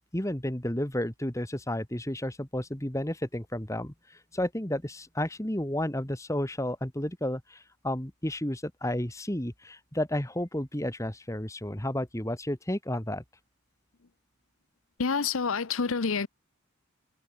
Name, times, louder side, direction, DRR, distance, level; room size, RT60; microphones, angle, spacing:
voice 1, 0.0-13.2, left 1 dB, 15° left, 1.6 m, -32 dB
voice 2, 15.0-16.3, left 5 dB, 75° left, 0.8 m, -27 dB
head